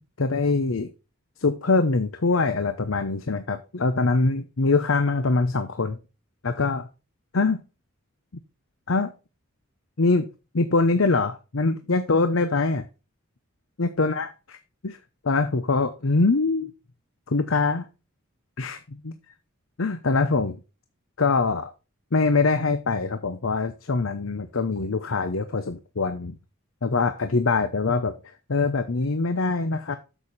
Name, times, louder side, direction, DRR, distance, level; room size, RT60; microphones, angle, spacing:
voice 1, 0.2-0.9 1.4-6.0 6.4-6.9 7.3-7.6 8.9-9.1 10.0-10.3 10.5-12.8 13.8-14.3 14.8-15.0 15.2-16.7 17.3-17.8 18.6-19.1 19.8-20.6 21.2-21.7 22.1-26.3 26.8-28.2 28.5-30.0, left 3 dB, 70° left, 11 dB, 0.8 m, -23 dB
8.6 x 7.1 x 4.1 m, 0.31 s
head